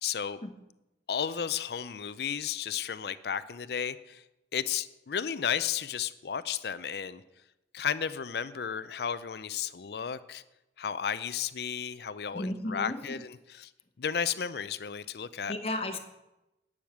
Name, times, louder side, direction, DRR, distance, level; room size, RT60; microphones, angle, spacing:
voice 1, 0.0-0.4 1.1-4.2 4.5-7.2 7.7-10.4 10.8-13.7 14.0-15.5, left 7 dB, 65° left, 14 dB, 0.5 m, -33 dB
voice 2, 12.3-13.2 15.5-16.0, left 1 dB, 35° left, 6 dB, 1.1 m, -34 dB
10.5 x 6.5 x 8.6 m, 0.97 s
head